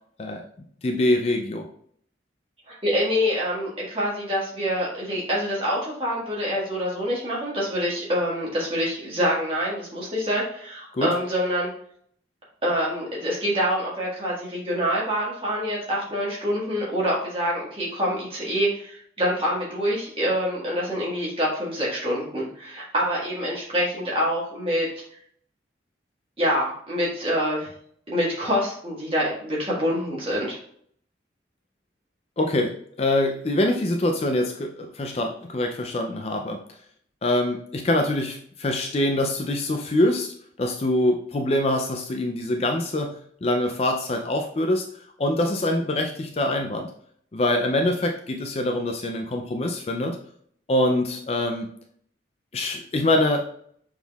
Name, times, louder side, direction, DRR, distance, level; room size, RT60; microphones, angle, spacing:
voice 1, 0.8-1.7 10.9-11.1 32.4-36.6 37.2-43.1 43.4-44.9 45.2-46.9 47.3-50.2 50.7-51.7 52.5-53.4, left 1 dB, 35° left, 3 dB, 0.4 m, -24 dB
voice 2, 2.8-11.7 12.6-24.8 26.4-27.7 28.1-30.6, equal, 30° right, -5 dB, 1.6 m, -26 dB
6.1 x 3.6 x 2.3 m, 0.62 s
head